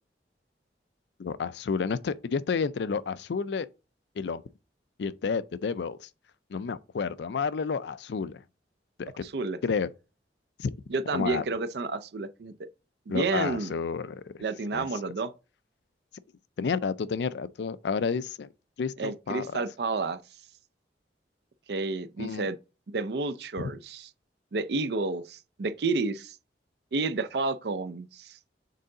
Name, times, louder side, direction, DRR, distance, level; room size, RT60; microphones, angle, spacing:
voice 1, 1.2-3.7 4.2-4.4 5.0-6.1 6.5-8.4 9.0-9.3 9.6-9.9 10.6-10.7 11.1-11.4 13.1-14.3 14.7-14.9 16.6-18.5 18.8-19.6 22.2-22.5 23.6-23.7, left 5 dB, 75° left, 0.4 m, -30 dB
voice 2, 9.2-9.6 10.9-12.5 13.1-13.7 14.4-15.3 19.0-20.2 21.7-22.6 22.9-24.1 24.5-26.4 26.9-28.4, right 3 dB, 65° right, 0.5 m, -30 dB
6.6 x 3.8 x 3.8 m
head